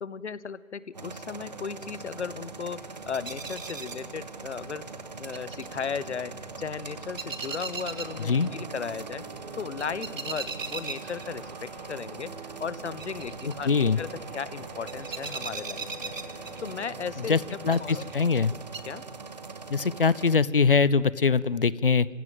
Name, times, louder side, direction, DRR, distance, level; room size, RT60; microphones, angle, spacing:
voice 1, 0.0-4.9 5.2-9.2 9.6-16.1 16.6-17.4 17.8-18.0 18.9-19.0, left 6 dB, 60° left, 18 dB, 0.9 m, -36 dB
sound 1, 0.9-20.4, right 4 dB, 35° right, 1.0 m, -42 dB
sound 2, 2.8-18.8, right 4 dB, 85° right, 1.8 m, -42 dB
sound 3, 7.8-18.1, right 2 dB, 10° right, 1.5 m, -46 dB
voice 2, 13.7-14.0 17.3-17.4 17.6-18.5 19.7-22.1, left 5 dB, 45° left, 21 dB, 0.5 m, -22 dB
25.0 x 16.0 x 9.1 m, 2.6 s
hypercardioid pair, 175°, 38 cm